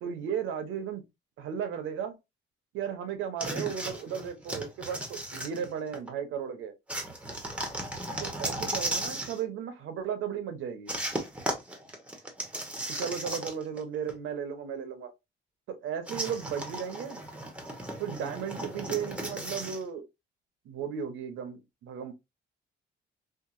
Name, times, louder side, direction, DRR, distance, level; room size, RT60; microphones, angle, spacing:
voice 1, 0.0-1.0 1.4-2.2 2.7-6.7 8.2-10.9 12.9-15.1 15.7-17.2 18.0-20.0 20.6-22.1, right 8 dB, 80° right, 0.7 m, -35 dB
sound 1, 3.4-6.1 6.9-9.4 10.9-13.8 14.1-14.2 16.1-19.8, right 1 dB, 5° right, 0.9 m, -35 dB
2.8 x 2.5 x 2.4 m
cardioid pair, 90°, 20 cm